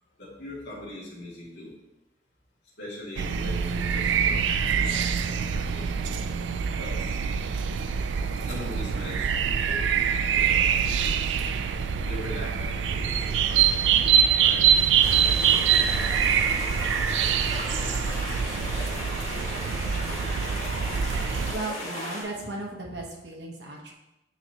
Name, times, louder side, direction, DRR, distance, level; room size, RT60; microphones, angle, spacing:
voice 1, 0.2-1.7 2.8-4.4 4.7-6.0 6.8-7.2 8.4-11.5 12.0-14.7 15.3-15.9 16.2-16.9, left 1 dB, 75° left, -7 dB, 2.4 m, -42 dB
sound 1, 3.2-21.6, right 8 dB, 85° right, 0.4 m, -24 dB
sound 2, 15.0-22.2, left 2 dB, 40° left, 1.8 m, -36 dB
voice 2, 21.5-23.9, right 2 dB, 70° right, 0 dB, 1.2 m, -35 dB
9.2 x 4.1 x 2.9 m, 0.97 s
head